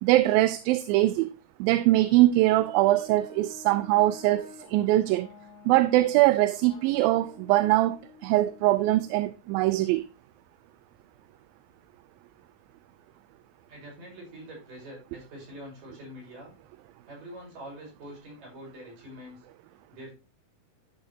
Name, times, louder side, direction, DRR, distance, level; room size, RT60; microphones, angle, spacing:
voice 1, 0.0-1.3 1.6-5.3 5.7-10.1, right 16 dB, 85° right, 2.4 m, -22 dB
Brass instrument, 2.5-9.2, left 4 dB, 45° left, 2.1 m, -50 dB
voice 2, 13.7-16.5 17.1-19.4 19.9-20.1, equal, 65° right, 7.2 m, -44 dB
12.0 x 6.9 x 2.8 m
omnidirectional pair, 4.1 m